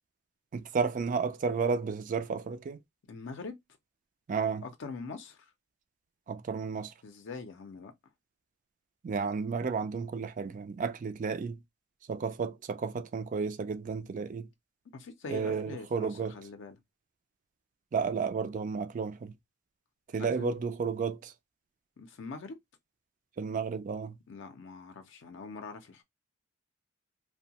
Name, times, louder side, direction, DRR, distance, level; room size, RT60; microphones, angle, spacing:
voice 1, 0.5-2.8 4.3-4.6 6.3-6.9 9.0-11.6 12.1-14.5 15.3-16.3 17.9-19.3 20.1-21.3 23.4-24.2, right 5 dB, 40° right, 0.3 m, -32 dB
voice 2, 3.1-3.6 4.6-5.5 7.0-7.9 14.9-16.8 20.2-20.6 22.0-22.6 24.3-26.0, left 4 dB, 65° left, 0.5 m, -43 dB
2.6 x 2.1 x 2.7 m
head